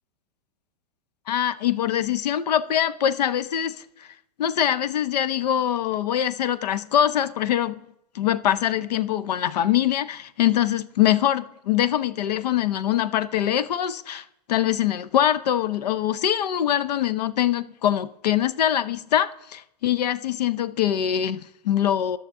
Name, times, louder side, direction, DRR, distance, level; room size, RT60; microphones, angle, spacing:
voice 1, 1.3-3.7 4.4-7.7 8.1-22.2, left 11 dB, 90° left, 0.6 m, -23 dB
12.5 x 6.5 x 3.6 m
supercardioid pair, 150°, 20 cm